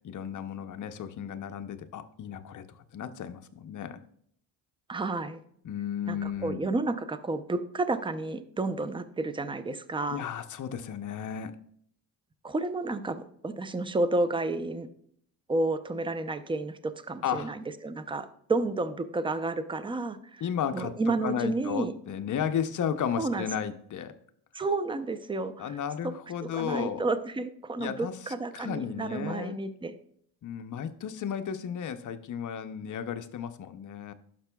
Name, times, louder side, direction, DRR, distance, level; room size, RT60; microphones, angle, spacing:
voice 1, 0.0-2.7 2.9-4.0 5.6-6.7 10.1-11.5 17.2-17.5 20.4-20.9 21.2-24.2 25.6-27.0 27.8-29.6 30.4-34.1, left 8 dB, 45° left, 9 dB, 0.7 m, -34 dB
voice 2, 4.9-5.4 6.1-10.2 12.4-14.9 15.5-20.4 20.7-21.9 23.2-23.5 24.5-25.7 26.5-29.9, right 2 dB, 10° right, 11 dB, 0.5 m, -31 dB
11.5 x 6.0 x 2.3 m, 0.66 s
cardioid pair, 85°, 44 cm